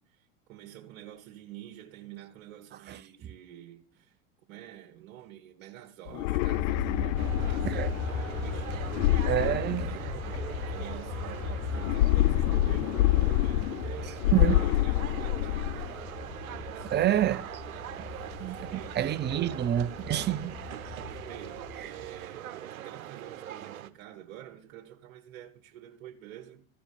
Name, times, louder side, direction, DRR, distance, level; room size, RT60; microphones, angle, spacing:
voice 1, 0.0-4.2 4.5-14.3 14.6-15.9 16.1-17.1 18.3-19.0 19.4-19.6 21.3-26.7, right 13 dB, 65° right, 1.6 m, -47 dB
sound 1, 6.1-8.0 8.9-10.4 11.7-13.9 14.2-15.9, left 16 dB, 65° left, 0.5 m, -26 dB
Aircraft, 6.2-22.3, left 5 dB, 35° left, 1.4 m, -38 dB
sound 2, 7.2-23.9, right 11 dB, 90° right, 1.0 m, -42 dB
voice 2, 9.3-9.9 14.3-14.6 16.8-17.6 18.4-18.7 19.0-20.5, right 12 dB, 25° right, 0.6 m, -28 dB
14.5 x 5.2 x 7.1 m
hypercardioid pair, 100°, 41 cm